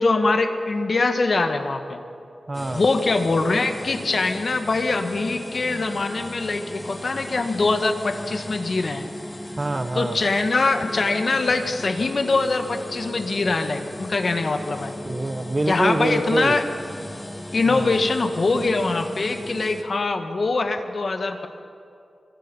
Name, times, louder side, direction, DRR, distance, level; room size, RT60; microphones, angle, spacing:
voice 1, 0.0-2.0 2.7-9.0 9.9-14.9 15.7-16.6 17.5-21.5, left 3 dB, 55° left, 7 dB, 1.6 m, -23 dB
sound 1, 2.5-19.8, left 1 dB, 20° left, 1.8 m, -36 dB
voice 2, 2.5-2.8 9.6-10.2 15.0-16.6 17.7-17.9, right 2 dB, 30° right, 11 dB, 0.8 m, -25 dB
24.5 x 24.5 x 5.5 m, 2.5 s
wide cardioid pair, 125°, 0 cm